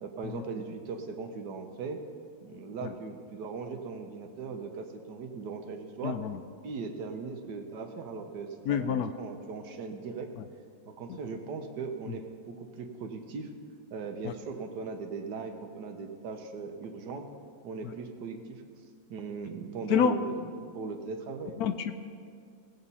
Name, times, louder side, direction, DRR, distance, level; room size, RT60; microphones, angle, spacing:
voice 1, 0.0-2.0 2.4-6.3 6.6-10.3 10.9-13.5 13.9-17.2 17.6-18.6 19.1-21.6, right 5 dB, 85° right, 5 dB, 1.6 m, -39 dB
voice 2, 6.0-6.4 8.7-9.1 14.2-14.3 19.9-20.1 21.6-21.9, left 8 dB, 70° left, 10 dB, 1.0 m, -27 dB
18.0 x 7.9 x 4.1 m, 2.2 s
omnidirectional pair, 1.7 m